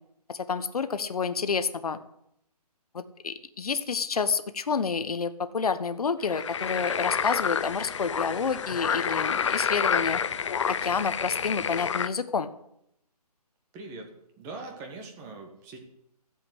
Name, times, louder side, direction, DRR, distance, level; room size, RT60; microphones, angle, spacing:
voice 1, 0.3-2.0 2.9-10.2 10.7-12.5, left 5 dB, 65° left, 11 dB, 1.2 m, -29 dB
sound 1, 6.2-12.1, left 7 dB, 45° left, 0.6 m, -28 dB
voice 2, 13.7-15.8, right 3 dB, 15° right, 4 dB, 1.5 m, -42 dB
13.5 x 7.8 x 8.0 m, 0.77 s
hypercardioid pair, 160°, 21 cm